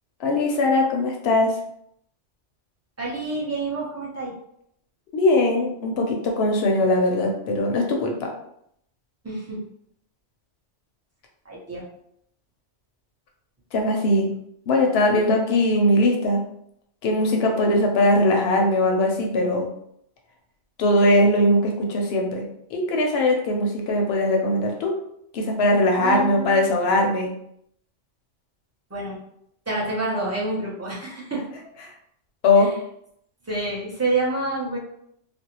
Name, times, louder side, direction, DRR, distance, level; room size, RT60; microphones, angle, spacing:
voice 1, 0.2-1.5 5.1-8.3 13.7-14.3 14.7-16.4 17.0-19.7 20.8-22.4 22.7-24.9 25.3-27.3 32.4-32.7, left 1 dB, 65° left, 1 dB, 0.7 m, -20 dB
voice 2, 3.0-4.3 9.2-9.6 11.4-11.8 26.0-26.6 28.9-29.2 29.7-31.4 32.6-32.8 33.5-34.8, right 2 dB, 20° right, -6 dB, 0.4 m, -28 dB
2.5 x 2.0 x 2.8 m, 0.73 s
omnidirectional pair, 1.3 m